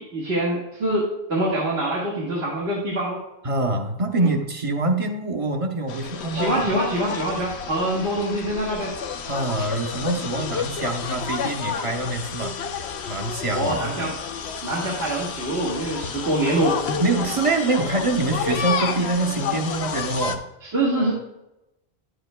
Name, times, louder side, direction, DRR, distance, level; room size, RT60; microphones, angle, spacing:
voice 1, 0.0-3.2 4.2-4.3 6.3-8.9 13.5-14.1 14.6-16.8 20.6-21.1, right 1 dB, 75° right, -6 dB, 1.9 m, -24 dB
voice 2, 3.4-6.6 9.2-12.6 13.1-14.1 17.0-20.4, right 2 dB, 35° right, 3 dB, 0.9 m, -25 dB
sound 1, 5.9-20.4, left 6 dB, 90° left, 1.0 m, -30 dB
10.5 x 8.0 x 2.2 m, 0.91 s
omnidirectional pair, 1.1 m